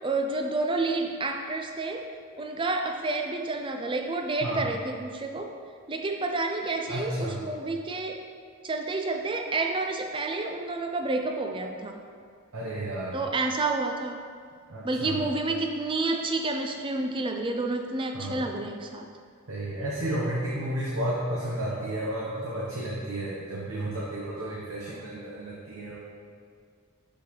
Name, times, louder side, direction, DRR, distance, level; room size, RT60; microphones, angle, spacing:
voice 1, 0.0-2.0 2.4-5.5 5.9-8.2 8.6-12.0 13.1-14.2 14.8-19.1, right 2 dB, 25° right, 4 dB, 0.4 m, -29 dB
voice 2, 4.4-4.7 6.9-7.5 12.5-13.2 14.7-15.2 18.1-18.4 19.5-26.1, right 1 dB, 70° right, -6 dB, 0.9 m, -32 dB
6.3 x 5.9 x 3.1 m, 2.1 s
head